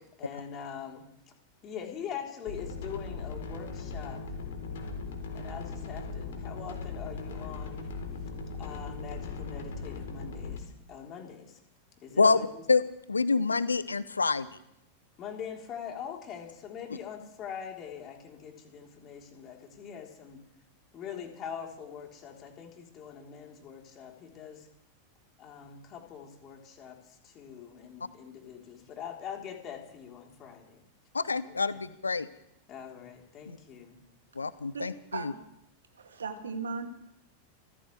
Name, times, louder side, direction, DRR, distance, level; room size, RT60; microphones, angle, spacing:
voice 1, 0.2-1.0 1.6-4.2 5.3-7.9 8.6-11.6 12.0-12.6 15.2-20.4 20.9-24.7 25.4-30.8 31.5-31.8 32.7-34.0, left 8 dB, 30° left, 1 dB, 4.0 m, -43 dB
sound 1, 2.5-10.6, left 4 dB, 60° left, 4.0 m, -38 dB
voice 2, 13.1-14.5 31.1-32.3 34.4-35.3, left 4 dB, 75° left, 18 dB, 0.7 m, -26 dB
voice 3, 34.7-35.4 35.9-36.9, right 5 dB, 70° right, 4 dB, 2.6 m, -37 dB
28.5 x 14.5 x 3.5 m, 0.76 s
figure-of-eight pair, 90°, 0 cm